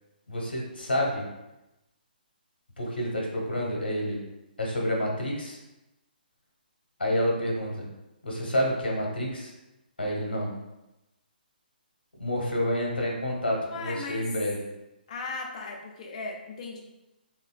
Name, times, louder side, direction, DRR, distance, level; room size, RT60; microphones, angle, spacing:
voice 1, 0.3-1.3 2.8-4.2 4.6-5.6 7.0-7.9 8.2-9.5 10.0-10.5 12.2-14.6, equal, 75° left, -2 dB, 0.9 m, -28 dB
voice 2, 13.7-14.3 15.1-16.8, left 3 dB, 45° left, 1 dB, 0.5 m, -37 dB
3.1 x 2.4 x 2.3 m, 0.96 s
figure-of-eight pair, 140°, 5 cm